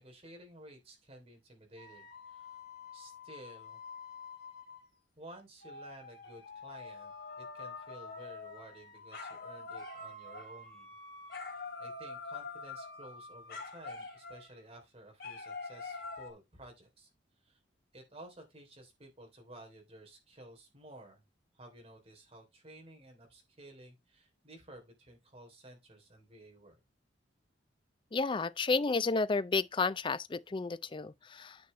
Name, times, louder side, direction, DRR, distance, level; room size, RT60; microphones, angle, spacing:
voice 1, 0.0-2.5 2.9-3.8 5.2-10.9 11.8-17.1 17.4-17.6 17.9-21.2 21.5-26.8, right 1 dB, 30° right, 3.2 m, -54 dB
sound 1, 1.8-4.9 5.6-14.6 15.2-16.3, left 4 dB, 55° left, 2.7 m, -46 dB
voice 2, 28.1-31.6, left 4 dB, 25° left, 0.4 m, -31 dB
9.6 x 6.5 x 3.2 m
head